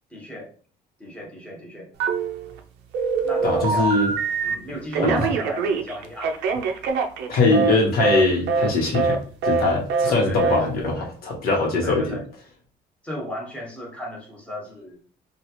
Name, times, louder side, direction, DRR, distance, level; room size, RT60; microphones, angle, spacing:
voice 1, 0.1-0.5 1.0-1.9 3.2-4.0 4.4-6.5 10.0-11.1 11.8-12.2 13.0-15.0, equal, 5° left, -3 dB, 1.1 m, -34 dB
Telephone, 2.0-2.6 2.9-4.5 4.9-7.7 8.0-8.2 8.5-8.7 8.9-9.2 9.4-9.6 9.9-10.1 10.4-10.6, right 5 dB, 80° right, 0.5 m, -23 dB
voice 2, 3.4-4.1 5.0-5.2 7.3-9.2 9.4-12.1, left 2 dB, 60° left, -1 dB, 1.1 m, -21 dB
3.0 x 2.4 x 2.9 m, 0.43 s
cardioid pair, 110°, 17 cm